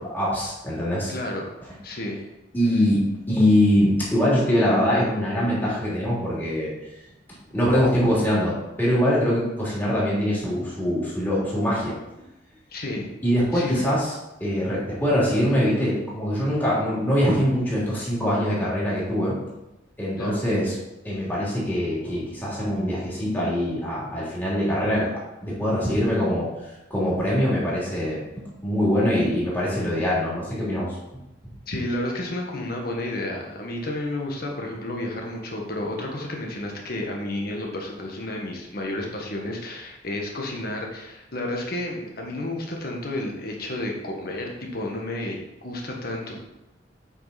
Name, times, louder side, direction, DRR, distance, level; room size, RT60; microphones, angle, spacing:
voice 1, 0.0-1.1 2.5-6.7 7.5-11.9 13.2-14.1 14.4-19.3 20.0-20.7 21.0-25.1 25.4-28.2 28.6-31.0, equal, 10° left, -7 dB, 2.8 m, -23 dB
voice 2, 1.1-1.5 1.8-2.3 12.7-13.1 13.5-13.8 20.2-20.4 31.7-46.4, left 1 dB, 55° left, 0 dB, 1.5 m, -31 dB
8.4 x 5.2 x 4.2 m, 0.94 s
head